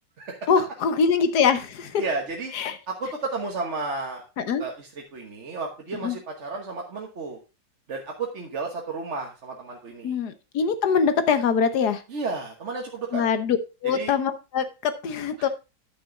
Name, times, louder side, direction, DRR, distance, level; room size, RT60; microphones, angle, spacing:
voice 1, 0.5-2.0 2.5-2.8 4.4-4.6 6.0-6.2 10.0-12.0 13.1-15.5, left 6 dB, 65° left, 11 dB, 1.4 m, -23 dB
voice 2, 2.0-2.5 2.9-4.2 4.6-7.4 7.9-10.2 12.1-13.2 13.9-14.1 15.4-15.5, right 3 dB, 45° right, 1 dB, 1.4 m, -32 dB
10.0 x 6.2 x 3.7 m, 0.28 s
omnidirectional pair, 2.0 m